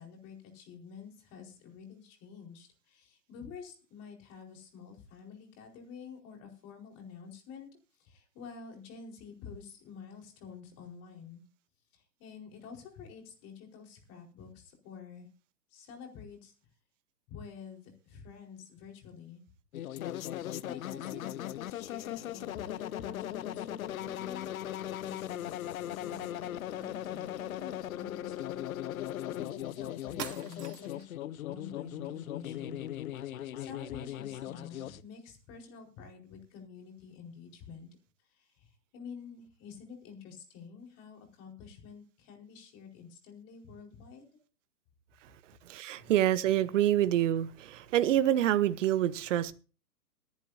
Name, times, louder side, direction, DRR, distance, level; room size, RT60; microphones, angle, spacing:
voice 1, 0.0-7.7 7.9-11.4 11.9-15.3 15.7-16.5 17.3-19.4 20.0-24.5 25.0-25.5 26.0-31.0 31.5-32.8 33.2-37.9 38.2-44.3 46.0-46.1, left 6 dB, 30° left, 4.6 m, -49 dB
sound 1, 19.7-35.0, left 12 dB, 55° left, 0.8 m, -38 dB
sound 2, 29.6-29.7 30.2-31.1, right 7 dB, 65° right, 2.9 m, -42 dB
voice 2, 45.7-49.5, right 12 dB, 45° right, 1.0 m, -27 dB
22.0 x 10.5 x 2.7 m
hypercardioid pair, 135°, 50 cm